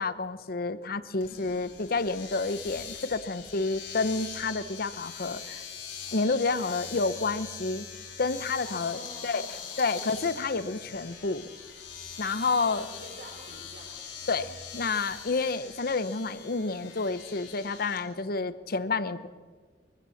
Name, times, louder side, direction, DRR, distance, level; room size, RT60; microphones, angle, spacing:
voice 1, 0.0-5.6 6.1-7.9 8.2-9.4 9.8-11.5 12.2-12.9 14.3-19.3, left 3 dB, 55° left, 14 dB, 0.9 m, -29 dB
Domestic sounds home sounds, 1.2-18.0, left 7 dB, 90° left, 3.6 m, -42 dB
voice 2, 1.2-1.7 8.6-10.2 12.7-14.2, right 1 dB, 70° right, 1 dB, 5.1 m, -48 dB
23.5 x 15.5 x 7.3 m, 1.5 s
head